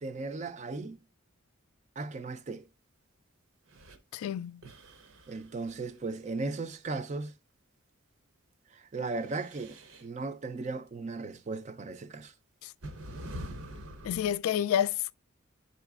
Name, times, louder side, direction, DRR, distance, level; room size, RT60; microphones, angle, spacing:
voice 1, 0.0-1.0 2.0-2.7 5.3-7.3 8.7-9.7 10.0-12.3, right 3 dB, 35° right, 0.4 m, -36 dB
sound 1, 3.7-4.0 4.6-6.7 9.0-10.1 11.6-11.7 12.8-14.4, equal, 85° right, 0.8 m, -45 dB
voice 2, 4.1-4.6 14.0-15.1, left 10 dB, 85° left, 0.3 m, -29 dB
10.5 x 4.0 x 2.3 m
head